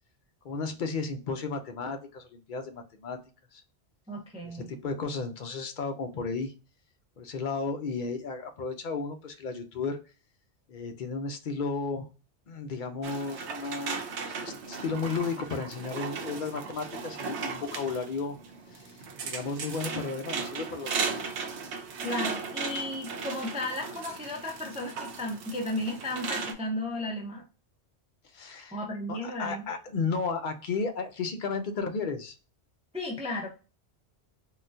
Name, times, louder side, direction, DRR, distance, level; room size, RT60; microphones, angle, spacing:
voice 1, 0.4-3.2 3.5-3.6 4.4-6.5 7.2-10.0 10.7-12.1 12.5-18.4 18.7-21.3 28.3-28.8 29.1-32.4, left 4 dB, 55° left, 6 dB, 0.6 m, -34 dB
voice 2, 4.1-4.7 22.0-27.4 28.7-29.6 32.9-33.5, left 1 dB, 10° right, 0 dB, 0.5 m, -34 dB
sound 1, 13.0-26.5, right 5 dB, 85° right, 0.9 m, -36 dB
3.8 x 2.3 x 2.5 m, 0.32 s
omnidirectional pair, 1.1 m